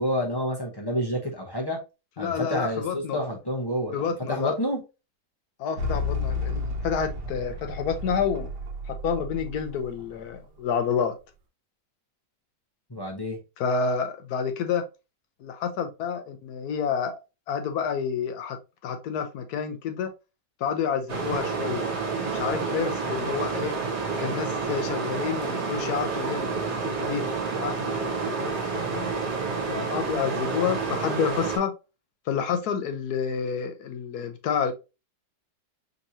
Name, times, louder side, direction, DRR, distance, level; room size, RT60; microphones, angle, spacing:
voice 1, 0.0-1.8 2.2-4.0 4.3-4.8 12.9-13.4, equal, 20° left, 0.6 m, -28 dB
voice 2, 2.2-3.2 3.9-4.5 5.6-8.5 8.9-11.1 13.6-14.8 15.4-17.1 17.5-18.6 18.8-20.1 20.6-21.8 22.3-23.8 24.2-27.2 27.6-28.1 28.4-28.5 28.9-29.1 29.7-31.7 32.3-34.7, left 7 dB, 70° left, 1.1 m, -29 dB
sound 1, 5.8-10.3, left 2 dB, 75° right, 1.4 m, -32 dB
sound 2, 21.1-31.6, right 4 dB, 60° right, 1.6 m, -29 dB
5.3 x 3.0 x 2.7 m
omnidirectional pair, 1.9 m